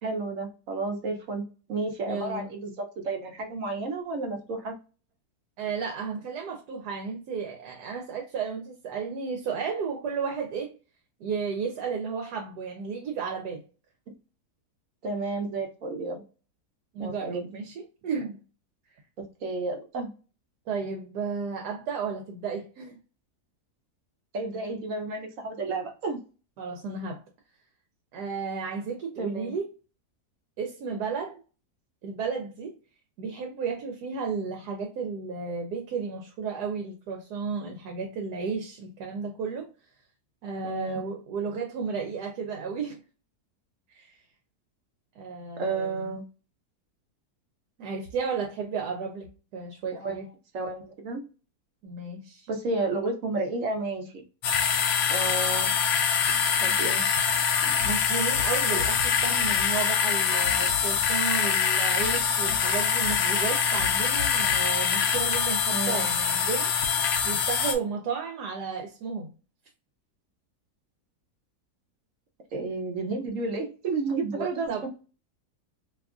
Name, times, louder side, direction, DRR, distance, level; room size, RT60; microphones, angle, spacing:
voice 1, 0.0-4.7 15.0-16.2 17.0-17.5 19.2-20.1 24.3-26.2 29.2-29.5 40.6-41.0 45.6-46.2 49.9-50.2 50.5-51.2 52.5-54.2 55.1-55.7 56.6-57.0 65.7-66.0 72.5-74.9, right 3 dB, 65° right, 1.0 m, -31 dB
voice 2, 2.1-2.5 5.6-10.7 11.2-13.6 16.9-18.4 20.7-23.0 26.6-27.2 28.1-29.6 30.6-31.4 32.0-32.7 33.2-39.7 40.4-43.0 43.9-44.2 45.2-46.1 47.8-49.3 49.5-50.3 51.8-52.5 57.8-66.7 67.2-69.3 74.3-74.9, right 5 dB, 85° right, 1.2 m, -33 dB
sound 1, 54.4-67.7, left 7 dB, 65° left, 0.8 m, -24 dB
2.9 x 2.4 x 3.5 m
omnidirectional pair, 1.7 m